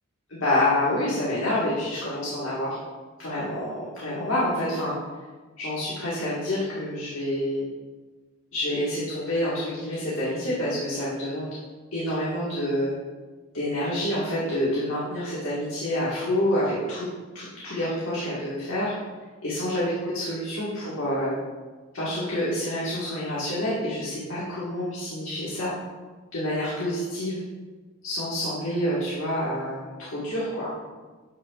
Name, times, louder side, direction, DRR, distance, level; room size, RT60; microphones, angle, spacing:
voice 1, 0.3-2.8 3.2-4.9 5.6-7.7 8.5-11.5 11.9-12.9 13.5-17.1 17.3-18.9 19.4-21.3 21.9-25.7 26.3-27.4 28.0-30.7, left 1 dB, 70° left, -8 dB, 1.7 m, -27 dB
9.9 x 5.5 x 2.4 m, 1.4 s
head